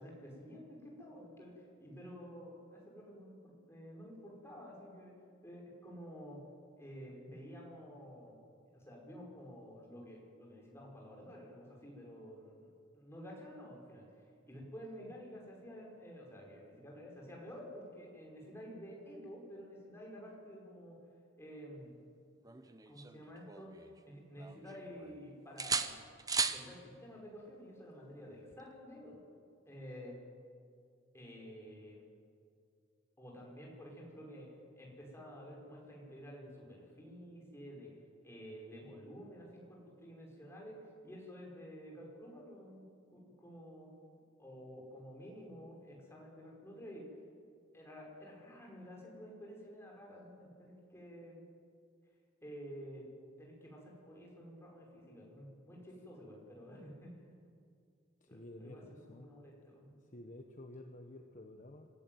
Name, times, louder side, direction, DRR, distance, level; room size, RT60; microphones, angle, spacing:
voice 1, 0.0-5.1 5.4-6.4 6.8-8.4 8.7-14.1 14.5-21.0 21.4-22.0 22.9-26.0 26.5-29.2 29.7-30.2 31.1-32.0 33.2-34.5 34.7-37.9 38.2-43.9 44.4-47.1 47.7-51.4 52.4-53.1 53.4-57.1 58.3-60.1, equal, 15° left, -2 dB, 5.5 m, -51 dB
sound 1, 22.5-24.0 24.4-25.2 25.6-26.7 28.5-28.7, right 5 dB, 20° right, 0.9 m, -37 dB
voice 2, 58.2-59.3 60.1-61.9, left 1 dB, 40° left, 4 dB, 1.2 m, -51 dB
25.5 x 15.5 x 9.3 m, 2.3 s
head